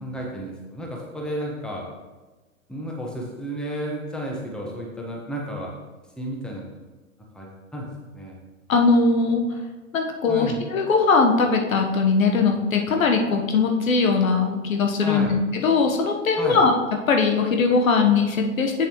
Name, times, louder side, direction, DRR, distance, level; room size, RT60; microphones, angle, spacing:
voice 1, 0.0-1.8 2.7-5.7 6.2-6.6 7.3-8.4 10.3-10.6 15.0-15.3 16.4-16.6, equal, ahead, -2 dB, 1.1 m, -32 dB
voice 2, 8.7-9.4 9.9-16.8 17.1-18.9, left 4 dB, 75° left, 3 dB, 1.1 m, -20 dB
7.6 x 6.9 x 3.0 m, 1.2 s
hypercardioid pair, 115°, 41 cm